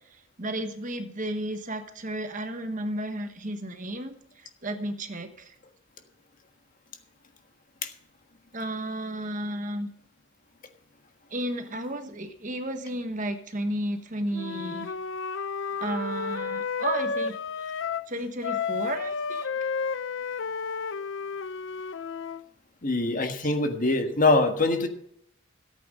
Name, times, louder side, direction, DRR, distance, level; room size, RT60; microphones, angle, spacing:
voice 1, 0.1-5.5 8.5-9.9 11.3-14.9 15.8-17.7 18.1-19.5 23.4-23.5, right 1 dB, 35° right, 8 dB, 1.2 m, -33 dB
Wind instrument woodwind instrument, 14.3-18.1 18.4-22.4, left 5 dB, 60° left, 0.5 m, -32 dB
voice 2, 22.8-24.9, left 2 dB, 40° left, 6 dB, 1.5 m, -23 dB
14.0 x 8.6 x 5.4 m, 0.71 s
head